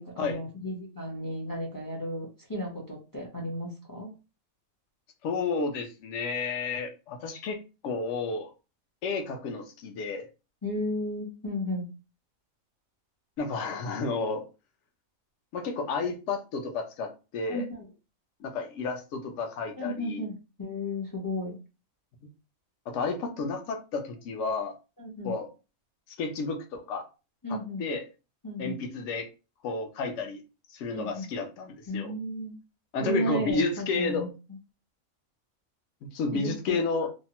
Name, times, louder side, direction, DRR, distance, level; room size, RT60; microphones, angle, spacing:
voice 1, 0.0-4.1 10.6-11.9 17.5-17.8 19.8-21.6 25.0-25.3 27.4-27.9 28.4-28.8 30.9-31.3 31.9-32.5 33.0-34.3 36.3-36.8, left 1 dB, 25° left, 0.4 m, -34 dB
voice 2, 5.2-7.6 7.8-8.5 9.0-10.2 13.4-14.4 15.5-17.7 18.4-20.3 22.9-24.7 25.2-25.5 26.2-27.0 27.5-28.0 28.6-29.3 29.6-30.4 30.7-32.1 32.9-34.3 36.0-37.1, left 4 dB, 65° left, 0.9 m, -31 dB
2.7 x 2.1 x 2.8 m
omnidirectional pair, 1.5 m